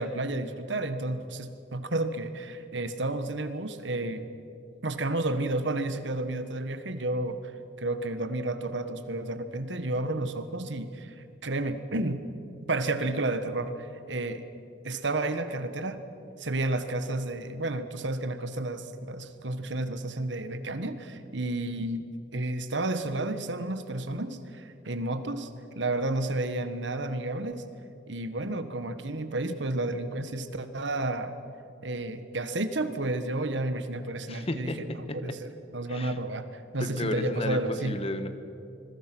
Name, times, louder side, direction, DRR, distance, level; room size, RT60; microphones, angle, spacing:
voice 1, 0.0-4.3 4.8-7.4 7.8-12.2 12.7-14.4 14.8-16.0 16.4-25.5 25.7-27.7 28.1-31.3 31.8-38.0, right 2 dB, 70° right, 10 dB, 1.5 m, -31 dB
voice 2, 34.3-35.2 35.9-36.2 36.8-38.3, left 1 dB, 30° left, 9 dB, 1.4 m, -33 dB
26.5 x 22.0 x 6.2 m, 2.7 s
head